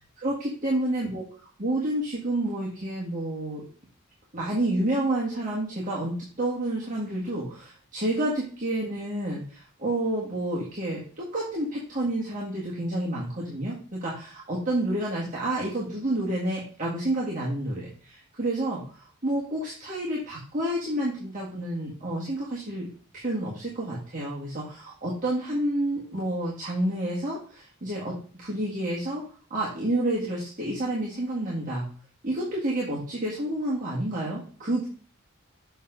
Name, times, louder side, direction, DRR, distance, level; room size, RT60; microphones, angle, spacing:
voice 1, 0.2-3.6 4.3-22.9 23.2-29.2 29.5-31.8 32.2-34.9, right 1 dB, 35° right, -6 dB, 1.8 m, -29 dB
7.0 x 5.8 x 3.9 m, 0.42 s
head